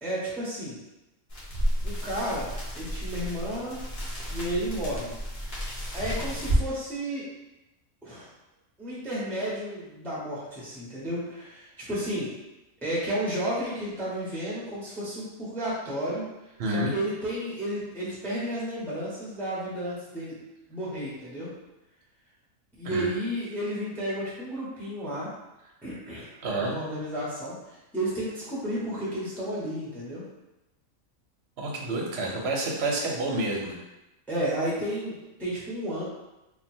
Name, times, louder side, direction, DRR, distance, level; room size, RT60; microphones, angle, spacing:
voice 1, 0.0-0.8 1.8-2.5 2.7-3.8 4.3-5.1 5.9-7.2 8.0-8.3 8.8-12.3 12.8-16.2 16.7-20.4 20.7-21.5 22.8-25.3 25.8-30.2 34.3-36.0, right 1 dB, ahead, -7 dB, 0.8 m, -32 dB
sound 1, 1.3-6.6, equal, 45° left, 1.4 m, -31 dB
voice 2, 16.6-16.9 22.8-23.1 26.4-26.7 31.6-33.8, right 2 dB, 55° right, -1 dB, 0.9 m, -29 dB
3.1 x 2.5 x 4.3 m, 0.99 s
omnidirectional pair, 1.5 m